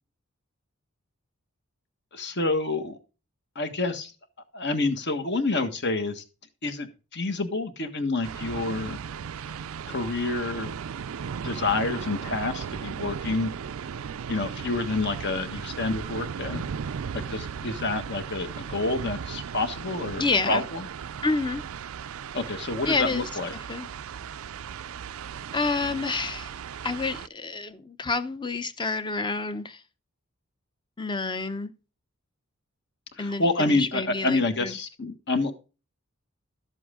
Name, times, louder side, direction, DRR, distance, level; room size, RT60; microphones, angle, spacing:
voice 1, 2.1-3.0 3.5-4.1 4.5-6.2 6.6-9.0 9.9-10.7 11.4-13.5 14.3-16.6 17.1-20.9 22.3-23.5 33.1-35.5, left 2 dB, 55° left, 1.5 m, -28 dB
sound 1, 8.2-27.3, right 7 dB, 75° right, 0.4 m, -36 dB
voice 2, 20.2-20.6 21.2-21.6 22.8-23.3 23.7-23.9 25.5-26.5 26.8-29.8 31.0-31.7 33.2-34.7, left 3 dB, 20° left, 0.7 m, -28 dB
12.5 x 7.6 x 3.7 m
head